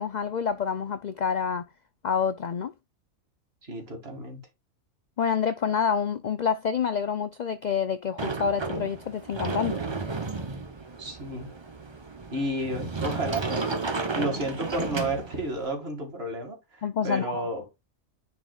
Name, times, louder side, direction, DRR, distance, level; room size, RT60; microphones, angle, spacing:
voice 1, 0.0-1.6 2.0-2.7 5.2-9.8 16.8-17.4, left 6 dB, 60° left, 0.4 m, -27 dB
voice 2, 3.6-4.4 11.0-11.5 12.3-17.6, right 1 dB, 50° right, 2.5 m, -32 dB
Sliding door, 8.2-15.6, right 3 dB, 25° right, 0.8 m, -33 dB
10.0 x 4.7 x 2.3 m
omnidirectional pair, 1.4 m